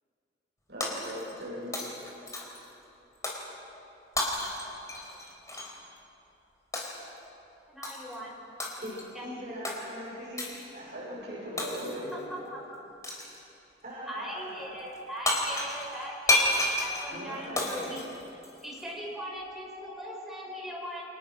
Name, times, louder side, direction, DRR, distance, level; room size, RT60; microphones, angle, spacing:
voice 1, 0.7-1.8 10.9-12.2, equal, 65° right, -5 dB, 7.4 m, -38 dB
Shatter, 0.8-1.5 1.7-2.7 3.2-3.5 4.2-5.7 6.7-7.1 7.8-8.2 8.6-9.1 9.6-9.8 10.4-10.7 11.6-12.1 13.0-13.4 15.0-15.1 15.3-18.8, left 2 dB, 20° left, 4.0 m, -31 dB
voice 2, 7.7-8.3 12.5-12.8 14.1-18.0 18.6-21.0, equal, ahead, -3 dB, 5.7 m, -40 dB
voice 3, 8.8-11.0 13.8-14.7 17.1-17.9, equal, 45° right, -6 dB, 5.7 m, -42 dB
29.5 x 24.5 x 6.3 m, 2.9 s
head